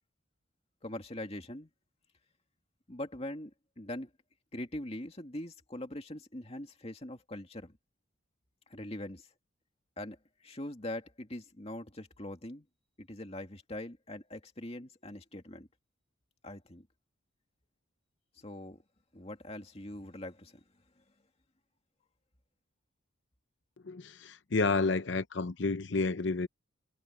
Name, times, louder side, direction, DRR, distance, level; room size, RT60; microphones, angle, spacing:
voice 1, 0.8-1.7 2.9-4.1 4.5-7.7 8.7-9.3 10.0-10.2 10.4-12.7 13.0-15.7 16.4-16.9 18.4-18.8 19.1-20.6, left 1 dB, 30° left, 2.4 m, -42 dB
voice 2, 23.8-26.5, left 3 dB, 60° left, 0.7 m, -30 dB
head